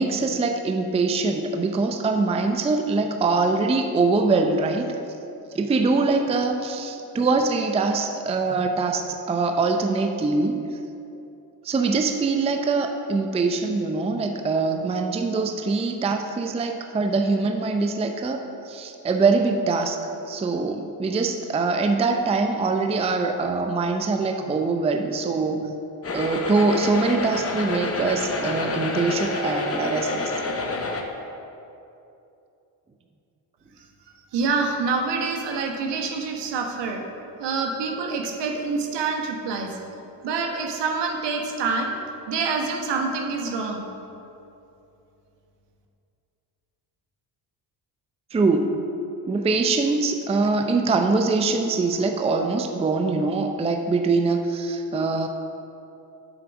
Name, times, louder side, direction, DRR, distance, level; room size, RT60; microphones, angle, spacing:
voice 1, 0.0-4.9 5.5-10.6 11.6-20.0 20.3-25.7 26.1-30.3 48.3-48.8 49.3-55.3, right 3 dB, 15° right, 5 dB, 0.5 m, -23 dB
sound 1, 26.0-31.0, left 3 dB, 30° left, 0.9 m, -28 dB
voice 2, 34.3-37.0 37.4-39.8 40.2-41.9 42.3-43.9, right 4 dB, 65° right, 2 dB, 1.2 m, -26 dB
7.7 x 4.5 x 6.1 m, 2.8 s
supercardioid pair, 80°, 45 cm